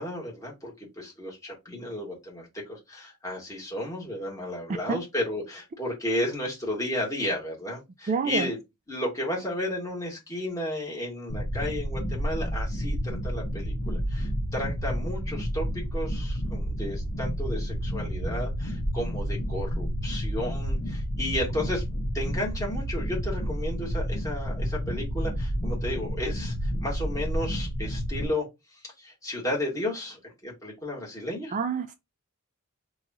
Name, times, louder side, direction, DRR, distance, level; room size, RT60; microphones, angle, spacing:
voice 1, 0.0-8.6 8.9-21.8 22.1-31.5, left 1 dB, 15° left, 1.4 m, -33 dB
voice 2, 8.1-8.5 31.5-31.9, right 5 dB, 35° right, 0.3 m, -27 dB
sound 1, 11.3-28.3, equal, 60° left, 0.8 m, -30 dB
2.9 x 2.3 x 3.9 m
head